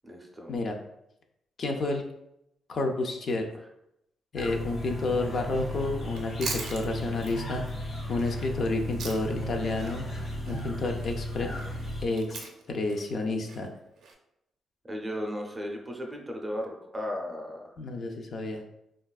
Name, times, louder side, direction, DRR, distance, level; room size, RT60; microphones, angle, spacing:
voice 1, 0.0-0.5 14.8-17.7, equal, 15° right, 1 dB, 0.5 m, -35 dB
voice 2, 1.6-2.0 2.7-3.5 4.3-7.8 8.1-10.0 10.5-11.5 12.0-13.7 17.8-18.6, left 2 dB, 50° left, 3 dB, 0.3 m, -30 dB
sound 1, 4.4-12.1, equal, 70° left, 0.9 m, -35 dB
Chewing mastication, 6.0-9.5 9.8-14.1, right 4 dB, 80° right, 0.4 m, -41 dB
3.3 x 2.3 x 2.2 m, 0.82 s
cardioid pair, 115°, 0 cm